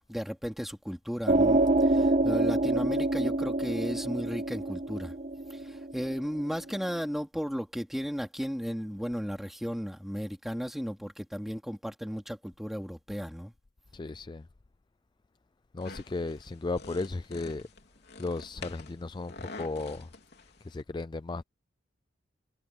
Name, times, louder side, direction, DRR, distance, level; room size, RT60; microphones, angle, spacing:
voice 1, 0.1-5.1 5.5-13.5, equal, ahead, 3.4 m, -35 dB
sound 1, 1.3-6.5, right 2 dB, 35° right, 0.7 m, -26 dB
voice 2, 13.9-14.5 15.7-17.7 18.2-20.1 20.6-21.4, left 3 dB, 25° left, 0.4 m, -35 dB
sound 2, 15.8-20.8, left 3 dB, 55° left, 3.6 m, -47 dB
head